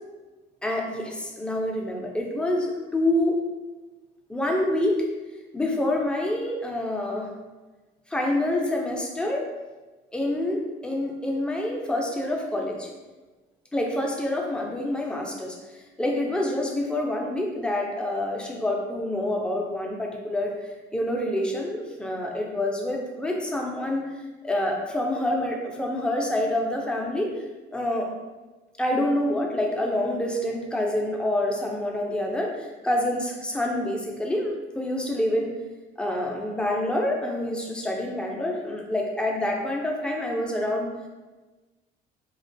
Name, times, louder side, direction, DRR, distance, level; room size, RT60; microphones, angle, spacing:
voice 1, 0.6-3.4 4.3-5.0 5.5-7.3 8.1-9.4 10.1-12.9 13.7-24.1 24.4-27.4 27.7-28.1 28.8-35.5 36.0-40.9, left 1 dB, 5° left, 0 dB, 0.4 m, -27 dB
2.3 x 2.1 x 2.5 m, 1.2 s
cardioid pair, 110°, 17 cm